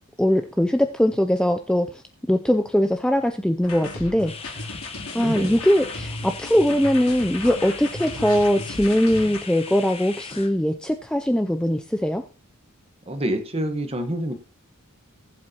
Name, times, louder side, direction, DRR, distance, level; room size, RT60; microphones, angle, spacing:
voice 1, 0.2-2.0 2.3-4.7 5.1-12.2, equal, 5° left, 6 dB, 0.4 m, -21 dB
sound 1, 3.6-9.4, left 2 dB, 75° left, 3.2 m, -35 dB
sound 2, 4.3-10.5, left 5 dB, 25° left, 1.0 m, -39 dB
voice 2, 5.1-5.6 13.1-14.3, right 1 dB, 25° right, 6 dB, 1.3 m, -27 dB
19.0 x 7.6 x 2.9 m, 0.37 s
head